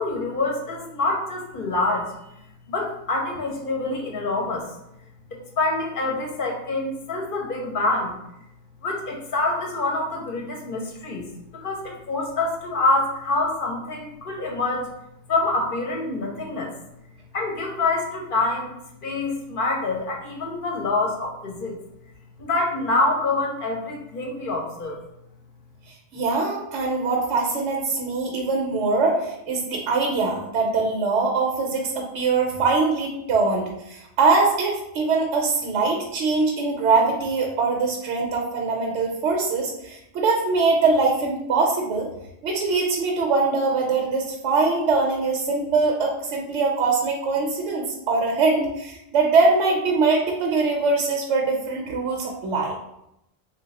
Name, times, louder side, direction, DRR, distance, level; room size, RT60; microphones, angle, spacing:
voice 1, 0.0-2.1 2.7-4.7 5.3-8.2 8.8-11.3 11.5-14.9 15.3-16.7 17.3-18.7 19.0-21.7 22.4-25.0, left 2 dB, 55° left, 0 dB, 0.8 m, -26 dB
voice 2, 26.1-42.1 42.4-52.7, right 4 dB, 75° right, 0 dB, 0.9 m, -22 dB
3.1 x 2.2 x 3.9 m, 0.83 s
omnidirectional pair, 1.2 m